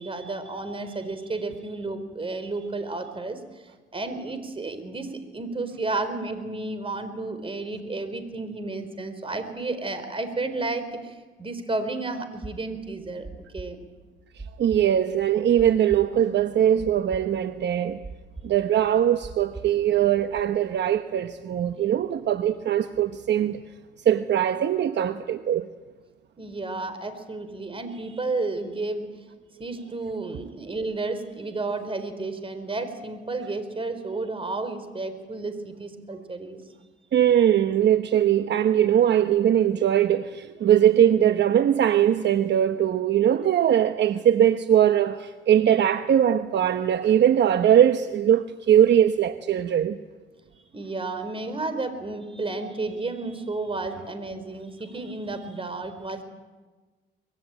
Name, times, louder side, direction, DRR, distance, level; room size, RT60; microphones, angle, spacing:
voice 1, 0.0-3.4 3.9-13.3 13.5-13.8 26.4-29.3 29.6-36.6 50.6-56.2, right 3 dB, 25° right, 4.3 m, -32 dB
sound 1, 12.4-20.4, right 3 dB, 10° right, 2.9 m, -42 dB
voice 2, 14.6-18.0 18.4-23.6 24.0-25.7 37.1-50.0, right 10 dB, 60° right, 1.0 m, -21 dB
24.5 x 21.5 x 9.0 m
cardioid pair, 90°, 20 cm